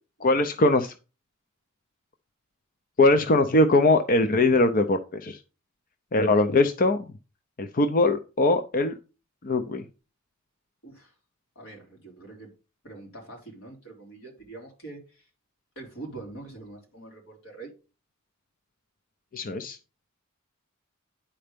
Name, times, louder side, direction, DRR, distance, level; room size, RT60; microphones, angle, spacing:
voice 1, 0.2-0.9 3.0-5.4 6.1-7.1 7.6-8.9 9.4-9.8 19.3-19.8, left 2 dB, 40° left, 0.6 m, -21 dB
voice 2, 10.8-11.1 11.6-12.5 12.8-15.3 15.8-17.7, right 2 dB, 85° left, 3.9 m, -44 dB
10.0 x 4.4 x 5.1 m
head